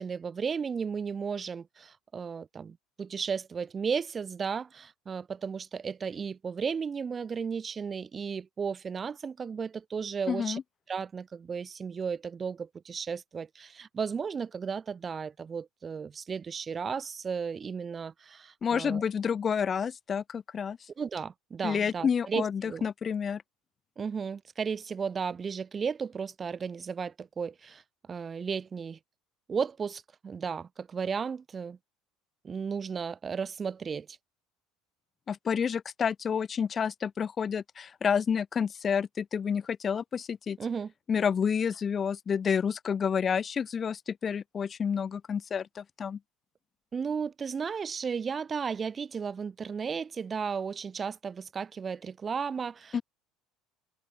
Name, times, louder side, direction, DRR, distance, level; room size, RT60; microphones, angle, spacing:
voice 1, 0.0-10.6 10.9-19.0 21.0-22.8 24.0-27.8 28.1-29.0 29.5-31.8 32.4-34.2 40.6-40.9 46.9-53.0, right 6 dB, 30° right, 0.4 m, -34 dB
voice 2, 10.3-10.6 18.6-20.8 21.6-23.4 35.3-40.6 41.1-46.2 52.9-53.0, left 7 dB, 35° left, 0.3 m, -29 dB
supercardioid pair, 90°, 0 cm